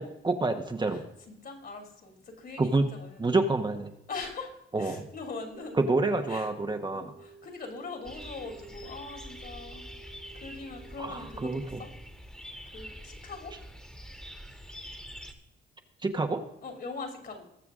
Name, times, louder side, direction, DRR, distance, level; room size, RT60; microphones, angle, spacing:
voice 1, 0.0-1.0 2.6-2.9 3.2-3.9 4.7-5.1 5.8-7.1 11.0-11.8 16.0-16.4, right 3 dB, 20° right, 5 dB, 1.1 m, -28 dB
voice 2, 0.9-3.4 4.1-5.8 6.3-6.5 6.9-9.9 10.3-11.9 12.7-13.5 16.6-17.4, left 4 dB, 50° left, 4 dB, 2.9 m, -42 dB
sound 1, 5.5-11.6, right 4 dB, 85° right, 1.6 m, -53 dB
sound 2, 8.0-15.3, equal, 5° left, 1.7 m, -45 dB
20.0 x 6.8 x 3.7 m, 0.82 s
cardioid pair, 90°, 20 cm